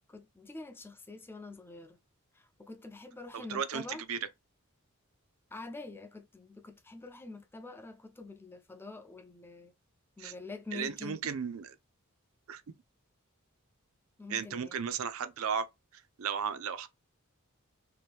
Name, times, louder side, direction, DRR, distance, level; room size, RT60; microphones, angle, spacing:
voice 1, 0.1-2.0 2.3-4.0 5.5-9.7 10.2-11.2 14.2-14.8, left 3 dB, 10° left, 0.4 m, -46 dB
voice 2, 3.3-3.8 4.1-4.2 10.2-10.3 10.7-11.7 12.5-12.6 14.3-15.6 16.2-16.9, right 7 dB, 70° right, 0.4 m, -34 dB
2.9 x 2.6 x 3.3 m
head